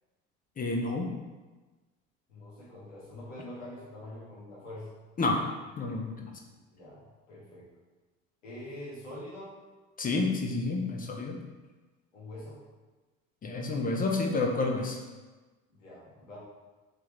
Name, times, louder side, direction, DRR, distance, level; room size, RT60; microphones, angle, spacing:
voice 1, 0.6-1.1 5.2-5.4 5.8-6.3 10.0-11.3 13.4-15.0, left 3 dB, 25° left, 1 dB, 0.6 m, -29 dB
voice 2, 2.3-4.9 6.7-7.0 7.3-7.7 8.4-9.5 12.1-12.6 15.7-16.4, left 1 dB, 85° left, -7 dB, 1.3 m, -44 dB
3.4 x 3.0 x 3.0 m, 1.2 s
hypercardioid pair, 65°, 38 cm